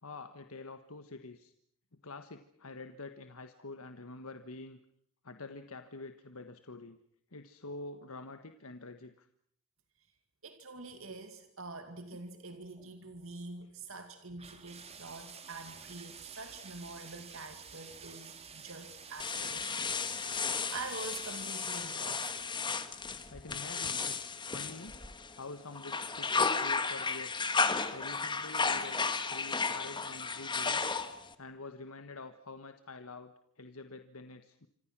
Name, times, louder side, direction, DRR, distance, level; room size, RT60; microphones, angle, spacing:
voice 1, 0.0-1.5 2.0-4.8 5.2-7.0 7.3-9.3 12.1-12.2 23.3-25.0 25.4-27.5 27.9-29.0 29.3-30.9 31.4-34.7, left 3 dB, 80° left, 8 dB, 1.5 m, -47 dB
voice 2, 10.4-19.9 20.7-22.5, right 3 dB, 70° right, 7 dB, 2.3 m, -45 dB
sound 1, 12.1-12.2 12.6-12.9 14.4-22.0, right 6 dB, 30° right, 2.7 m, -50 dB
sound 2, 19.2-25.4 25.8-31.3, left 4 dB, 20° left, 1.7 m, -33 dB
27.0 x 26.5 x 6.2 m, 0.65 s
head